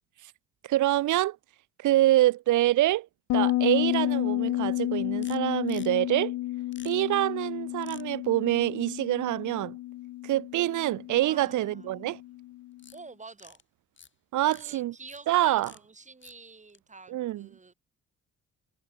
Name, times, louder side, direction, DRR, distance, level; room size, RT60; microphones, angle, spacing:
voice 1, 0.6-1.4 1.8-3.1 3.3-6.3 6.8-9.8 10.2-12.2 14.3-14.9 15.3-15.7 17.1-17.5, right 15 dB, 75° right, 0.9 m, -26 dB
Bass guitar, 3.3-12.7, left 16 dB, 75° left, 0.7 m, -31 dB
sound 1, 5.2-5.4 5.7-5.9 6.7-6.9 7.8-8.0 12.8-13.0 13.3-13.6 14.0-14.1 14.5-14.7 15.1-15.2 15.6-15.8 16.2-16.4 16.7-16.8, left 6 dB, 40° left, 6.6 m, -50 dB
voice 2, 11.2-12.2 12.9-13.6 14.5-17.7, right 4 dB, 25° right, 2.8 m, -48 dB
cardioid pair, 90°, 30 cm